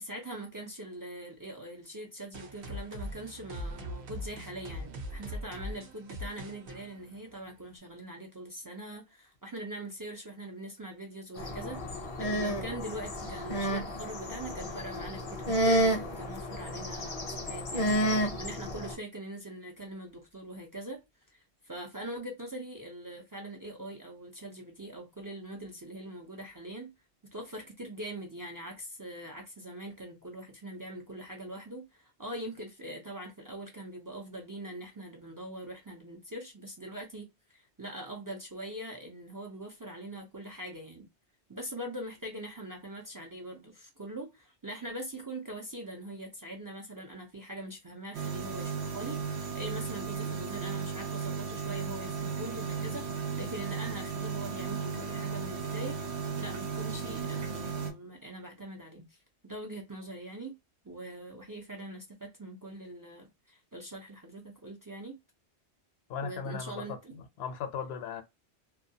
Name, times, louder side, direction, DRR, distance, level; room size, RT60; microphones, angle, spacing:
voice 1, 0.0-21.0 21.3-26.9 27.3-41.1 41.5-56.0 56.4-59.2 59.4-60.5 60.8-65.2 66.2-67.2, right 1 dB, 35° right, 0.3 m, -42 dB
sound 1, 2.3-7.8, equal, 60° right, 0.9 m, -41 dB
sound 2, 11.4-19.0, right 1 dB, 40° left, 0.5 m, -31 dB
sound 3, 48.1-57.9, right 5 dB, 85° right, 0.9 m, -35 dB
voice 2, 66.1-67.0 67.4-68.2, left 6 dB, 70° left, 0.8 m, -36 dB
2.3 x 2.2 x 2.7 m
omnidirectional pair, 1.1 m